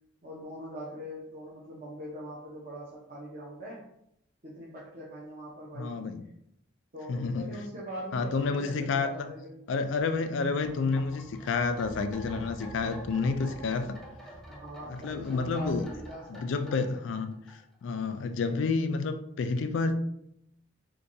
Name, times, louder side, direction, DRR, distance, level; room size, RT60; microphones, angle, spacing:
voice 1, 0.2-3.9 4.4-6.0 6.9-9.6 14.5-16.8, equal, 45° right, -6 dB, 0.8 m, -42 dB
voice 2, 5.7-6.3 7.1-7.5 8.1-9.3 9.7-14.0 14.9-15.9 16.3-19.9, left 4 dB, 75° left, 9 dB, 0.3 m, -30 dB
sound 1, 10.6-18.0 18.3-18.4, equal, ahead, 0.4 m, -47 dB
4.5 x 2.3 x 2.6 m, 0.77 s
head